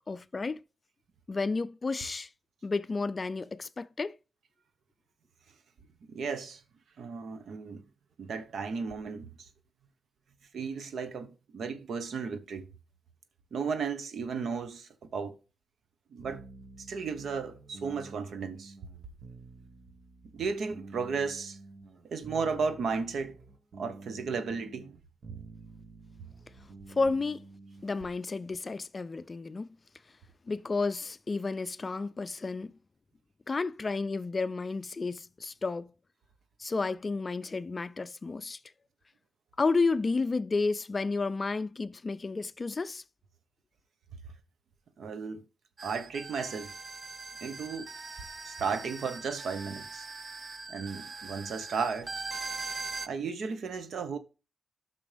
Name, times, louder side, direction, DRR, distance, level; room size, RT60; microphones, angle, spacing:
voice 1, 0.1-0.6 1.3-2.3 2.6-4.2 26.9-27.4 27.8-29.7 30.5-32.7 33.5-35.9 36.6-38.6 39.6-43.0, left 3 dB, 30° left, 0.4 m, -31 dB
voice 2, 6.1-6.6 7.0-7.8 8.2-9.5 10.5-12.7 13.5-15.4 16.1-16.4 16.8-18.7 20.3-21.6 22.0-23.4 23.8-25.0 45.0-45.5 45.8-46.7 47.4-47.9 48.4-50.1 50.7-52.1 53.0-54.2, right 5 dB, 90° right, 0.9 m, -34 dB
sound 1, 16.2-28.1, right 3 dB, 65° right, 1.1 m, -50 dB
sound 2, 45.8-53.1, right 4 dB, 40° right, 0.4 m, -41 dB
12.5 x 6.0 x 3.3 m
wide cardioid pair, 145°, 0 cm